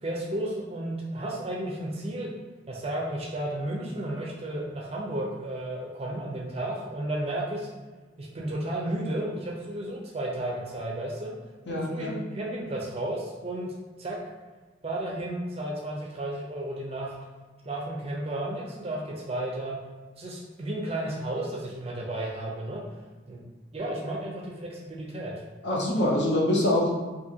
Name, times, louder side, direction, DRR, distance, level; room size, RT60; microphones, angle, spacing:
voice 1, 0.0-2.3 2.7-7.7 8.2-11.3 11.7-13.7 14.0-14.2 14.8-17.2 17.6-19.8 20.1-22.8 23.3-23.4 23.7-25.3, right 1 dB, 30° right, -2 dB, 0.4 m, -33 dB
voice 2, 11.7-12.2 25.6-26.9, left 1 dB, 65° left, -4 dB, 0.6 m, -24 dB
2.6 x 2.5 x 2.7 m, 1.3 s
head